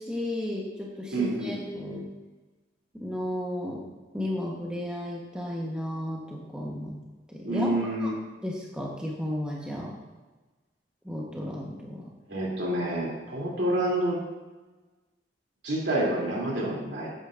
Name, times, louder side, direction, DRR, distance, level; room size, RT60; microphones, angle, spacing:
voice 1, 0.0-2.1 3.0-3.8 4.1-7.0 7.3-7.7 8.0-8.1 8.4-9.9 11.0-12.1, left 1 dB, 5° right, -3 dB, 1.2 m, -33 dB
voice 2, 1.1-1.6 7.4-8.1 12.3-14.2 15.6-17.1, right 1 dB, 75° right, -4 dB, 3.1 m, -28 dB
11.5 x 9.0 x 2.6 m, 1.2 s
head